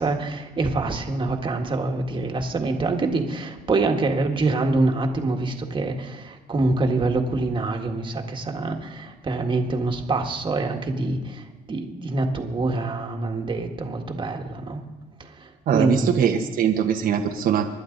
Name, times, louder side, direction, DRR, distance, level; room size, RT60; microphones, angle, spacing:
voice 1, 0.0-14.8 15.2-16.3, right 2 dB, 30° right, 3 dB, 1.8 m, -25 dB
voice 2, 15.7-17.7, right 8 dB, 55° right, 3 dB, 1.2 m, -22 dB
25.5 x 11.5 x 4.0 m, 1.3 s
cardioid pair, 110°, 17 cm